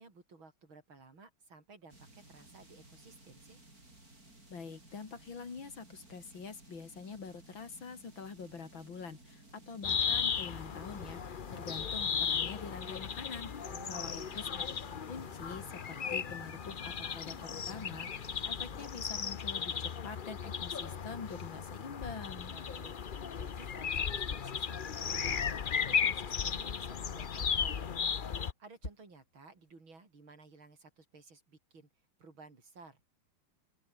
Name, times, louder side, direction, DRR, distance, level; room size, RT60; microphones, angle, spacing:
voice 1, 0.0-3.6 13.6-14.3 22.5-28.2 28.6-31.9 32.2-33.0, right 3 dB, 85° right, 5.6 m, -55 dB
sound 1, 1.9-18.9, right 2 dB, 45° right, 8.7 m, -57 dB
voice 2, 4.5-14.6 15.1-22.5, left 5 dB, 75° left, 3.8 m, -46 dB
sound 2, 9.8-28.5, left 7 dB, 60° left, 0.5 m, -36 dB
sound 3, 24.7-29.7, left 1 dB, 35° left, 8.0 m, -55 dB
open air
omnidirectional pair, 2.1 m